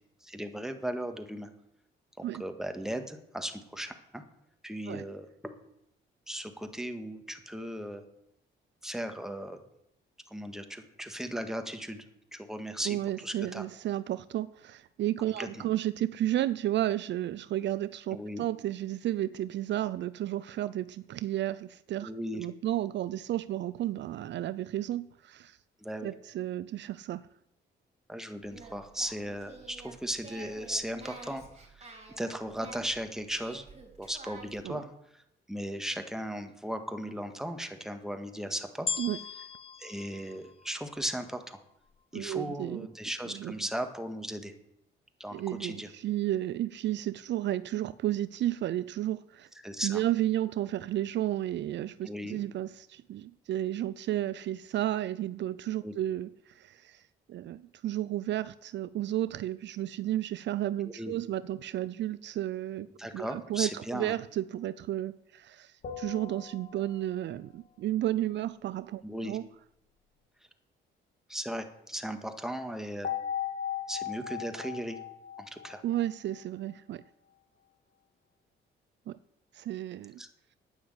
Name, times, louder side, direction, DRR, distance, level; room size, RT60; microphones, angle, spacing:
voice 1, 0.2-1.5 2.2-4.2 4.6-5.5 6.3-8.0 8.8-9.6 10.3-12.1 12.3-13.6 15.4-15.6 18.1-18.4 22.0-22.5 25.8-26.1 28.1-31.4 31.7-31.9 32.2-33.7 34.0-35.2 35.5-38.9 39.8-41.6 42.1-44.5 45.2-45.9 49.6-50.0 52.0-52.4 55.8-55.9 61.0-61.1 63.0-64.1 69.0-69.4 71.3-73.1 73.9-75.0 75.5-75.8 80.2-80.3, equal, ahead, 1.8 m, -37 dB
voice 2, 12.9-25.6 26.0-27.2 34.6-34.8 39.0-39.2 42.1-42.9 43.3-43.5 45.3-49.5 49.8-57.0 57.3-62.9 63.1-69.5 75.8-77.0 79.1-79.2 79.5-80.2, right 13 dB, 65° right, 0.4 m, -32 dB
Singing, 28.4-34.7, right 3 dB, 35° right, 4.4 m, -49 dB
sound 1, 38.9-41.3 41.9-42.0, left 6 dB, 30° left, 0.6 m, -38 dB
sound 2, 65.8-67.4 73.0-76.4, left 9 dB, 50° left, 2.2 m, -38 dB
9.8 x 9.5 x 8.0 m
cardioid pair, 90°, 20 cm